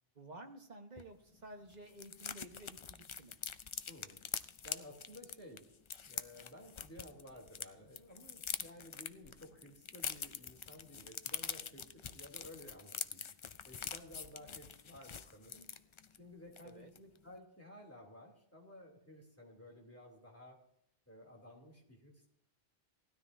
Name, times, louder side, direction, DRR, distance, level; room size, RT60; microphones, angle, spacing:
voice 1, 0.1-3.4 16.6-16.9, right 1 dB, 45° right, 4 dB, 1.4 m, -53 dB
sound 1, 1.0-1.1 1.3-1.4 1.7-7.7 7.9-16.2 16.5-16.7 17.0-17.2, left 6 dB, 45° left, 0.4 m, -44 dB
voice 2, 3.9-4.2 4.6-5.8 6.0-13.2 13.6-15.7 16.1-20.6 21.1-22.3, left 1 dB, 15° left, 0 dB, 2.9 m, -55 dB
18.0 x 13.0 x 2.7 m, 0.77 s
omnidirectional pair, 1.0 m